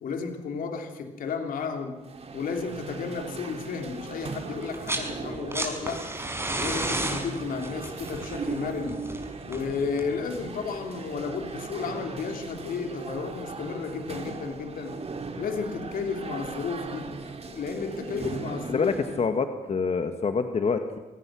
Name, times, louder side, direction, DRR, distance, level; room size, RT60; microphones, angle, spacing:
voice 1, 0.0-2.0 2.3-6.0 6.6-9.0 9.5-15.0 15.4-17.1 17.5-18.9, left 5 dB, 70° left, 5 dB, 3.2 m, -33 dB
sound 1, 2.0-19.3, right 4 dB, 45° right, 2.8 m, -38 dB
sound 2, 4.6-5.1 5.4-10.2 11.5-11.6, right 2 dB, 15° right, 5.3 m, -32 dB
voice 2, 18.7-21.0, left 5 dB, 45° left, 7 dB, 1.7 m, -26 dB
26.5 x 18.5 x 6.3 m, 1.1 s
supercardioid pair, 60°, 15 cm